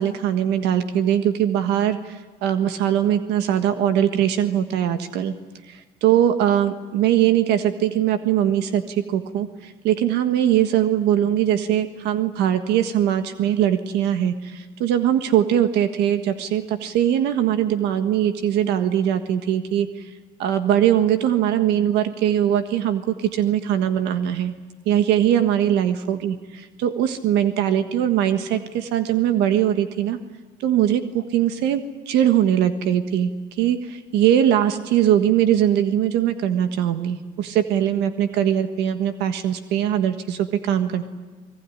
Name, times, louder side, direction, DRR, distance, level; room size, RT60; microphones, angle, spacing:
voice 1, 0.0-5.3 5.7-20.1 20.4-24.5 24.8-30.2 30.6-41.0, right 10 dB, 90° right, 9 dB, 1.5 m, -21 dB
24.0 x 21.5 x 10.0 m, 1.4 s
cardioid pair, 90°, 17 cm